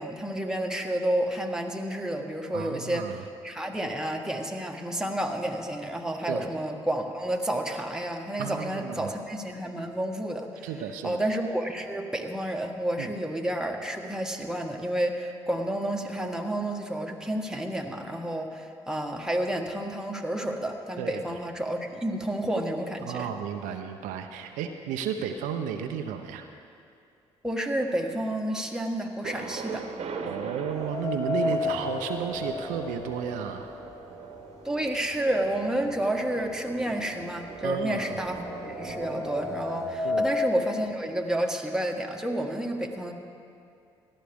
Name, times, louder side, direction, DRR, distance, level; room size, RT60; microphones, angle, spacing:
voice 1, 0.0-10.7 11.0-23.3 27.4-29.9 34.6-38.4 38.7-43.1, right 1 dB, 5° right, 1 dB, 1.5 m, -30 dB
voice 2, 2.5-3.2 6.3-6.5 8.4-9.1 10.6-11.2 13.0-13.1 21.0-21.2 23.1-26.5 30.2-33.7 37.6-38.0 40.0-40.3, right 8 dB, 80° right, 5 dB, 0.7 m, -33 dB
Thunder, 29.2-41.0, right 4 dB, 50° right, 1.2 m, -42 dB
sound 1, 30.7-34.8 35.1-35.2 36.2-36.3 36.7-40.5, left 3 dB, 25° left, 2.4 m, -33 dB
17.0 x 12.0 x 3.6 m, 2.4 s
hypercardioid pair, 60°, 13 cm